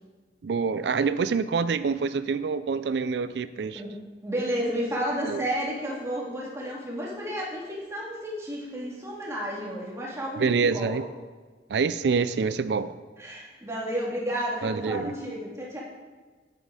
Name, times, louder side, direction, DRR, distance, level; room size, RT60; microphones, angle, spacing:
voice 1, 0.4-3.8 5.2-5.4 10.4-11.1 11.7-12.9 14.6-15.1, right 5 dB, 70° right, 14 dB, 0.4 m, -26 dB
voice 2, 4.2-11.0 13.2-15.8, equal, 15° right, -4 dB, 2.0 m, -32 dB
8.7 x 7.8 x 4.9 m, 1.4 s
head